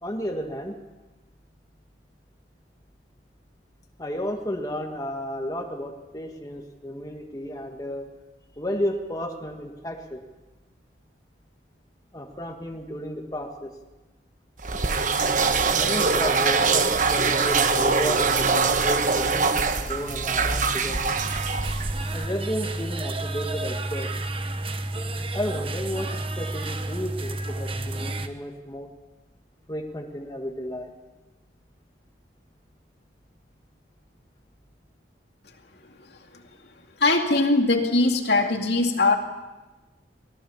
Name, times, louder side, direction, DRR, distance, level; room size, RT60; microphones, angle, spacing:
voice 1, 0.0-0.8 4.0-8.0 8.6-10.2 12.1-13.7 15.8-21.1 22.1-24.1 25.3-28.9 29.7-30.9, equal, 20° left, 2 dB, 1.6 m, -32 dB
sound 1, 14.6-22.3, right 4 dB, 45° right, 1.1 m, -23 dB
sound 2, 14.9-21.1, right 1 dB, 65° right, 4.0 m, -39 dB
sound 3, 21.1-28.3, right 2 dB, 30° right, 1.1 m, -31 dB
voice 2, 37.0-39.2, left 2 dB, 70° left, 3 dB, 2.5 m, -21 dB
24.0 x 17.5 x 7.0 m, 1.1 s
head